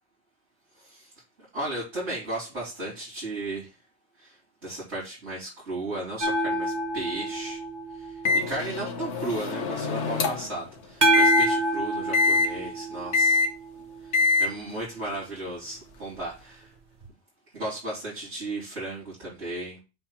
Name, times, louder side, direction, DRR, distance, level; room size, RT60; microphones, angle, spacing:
voice 1, 1.5-3.7 4.2-4.3 4.6-7.6 8.0-8.1 8.5-13.4 14.4-16.7 17.5-19.8, right 2 dB, 80° right, -8 dB, 4.1 m, -34 dB
sound 1, 6.2-9.0 11.0-14.2 17.1-17.2, right 1 dB, 40° right, 1.2 m, -28 dB
Microwave oven, 8.3-10.6 11.1-11.5 12.1-12.5 13.1-13.5 14.1-14.5, left 4 dB, 80° left, 1.3 m, -24 dB
7.7 x 2.8 x 5.9 m, 0.28 s
omnidirectional pair, 1.2 m